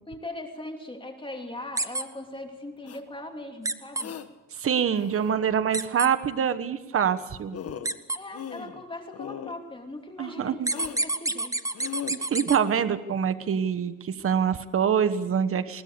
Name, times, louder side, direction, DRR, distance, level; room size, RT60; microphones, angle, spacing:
voice 1, 0.1-4.2 8.1-11.6, left 1 dB, 15° left, 3 dB, 2.8 m, -39 dB
sound 1, 1.8-2.0 3.6-4.0 5.7-6.1 7.8-8.2 10.7-12.6, right 2 dB, 10° right, 1.3 m, -28 dB
sound 2, 2.9-3.0 4.0-4.3 4.9-5.5 7.1-7.2 7.5-8.0 8.3-8.8 9.1-9.6 10.7-11.0 11.7-12.1, left 8 dB, 55° left, 1.6 m, -38 dB
voice 2, 4.5-7.6 10.2-10.7 12.1-15.8, right 8 dB, 45° right, 10 dB, 1.3 m, -25 dB
21.5 x 18.5 x 6.8 m, 1.1 s
cardioid pair, 90°, 30 cm